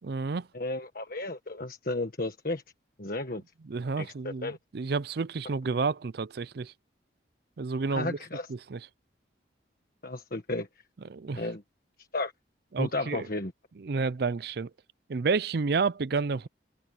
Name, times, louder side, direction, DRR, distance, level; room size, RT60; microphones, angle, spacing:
voice 1, 0.0-0.5 3.7-6.7 7.6-8.2 8.5-8.8 11.1-11.4 12.7-13.3 13.8-14.7 15.1-16.5, right 4 dB, 55° right, 0.5 m, -30 dB
voice 2, 0.5-2.6 3.0-3.4 4.0-4.6 7.9-8.5 10.0-10.7 11.3-11.6 12.0-12.3 12.8-13.5, left 2 dB, 50° left, 1.6 m, -33 dB
head